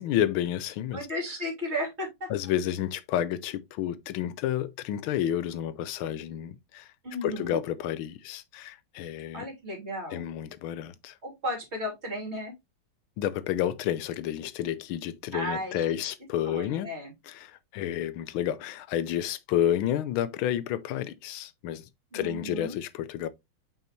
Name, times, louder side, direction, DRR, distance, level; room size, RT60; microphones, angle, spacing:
voice 1, 0.0-1.0 2.3-6.9 7.2-9.4 10.1-11.2 13.2-16.9 17.3-23.3, left 11 dB, 80° left, 1.5 m, -30 dB
voice 2, 0.9-2.3 7.0-7.6 9.3-10.2 11.2-12.5 15.3-16.0 16.4-17.1 22.1-22.8, equal, 30° right, 3.3 m, -34 dB
5.6 x 5.6 x 3.1 m
omnidirectional pair, 2.3 m